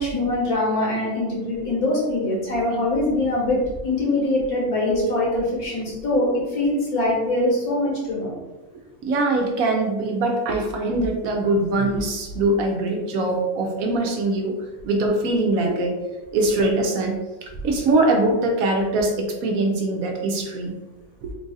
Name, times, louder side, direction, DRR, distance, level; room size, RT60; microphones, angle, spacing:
voice 1, 0.0-8.3 15.6-15.7, left 1 dB, 75° left, -5 dB, 1.9 m, -23 dB
voice 2, 9.0-14.5 14.8-15.9 16.3-17.2 17.4-20.7 21.2-21.3, right 2 dB, 70° right, 1 dB, 1.1 m, -22 dB
3.8 x 2.4 x 3.9 m, 1.1 s
omnidirectional pair, 1.6 m